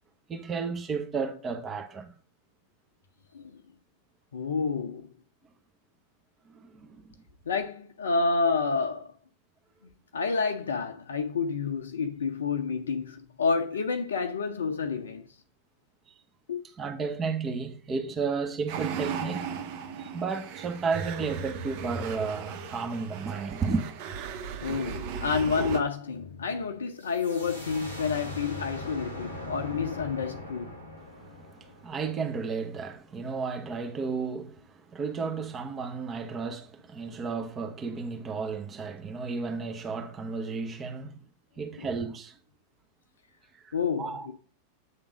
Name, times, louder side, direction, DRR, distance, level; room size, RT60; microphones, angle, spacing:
voice 1, 0.3-2.1 6.5-7.1 16.1-16.2 16.8-19.5 20.0-23.8 31.1-41.2 41.6-42.4 43.5-44.3, right 5 dB, 25° right, 1.0 m, -33 dB
voice 2, 4.3-5.1 7.5-9.1 10.1-15.3 16.5-16.6 24.6-30.7 41.7-41.9 43.7-44.3, left 5 dB, 70° left, 0.6 m, -29 dB
sound 1, 18.7-25.8, right 6 dB, 45° right, 1.2 m, -36 dB
sound 2, 27.0-32.5, left 1 dB, 90° right, 1.8 m, -41 dB
8.2 x 3.6 x 6.1 m
figure-of-eight pair, 90°, 0 cm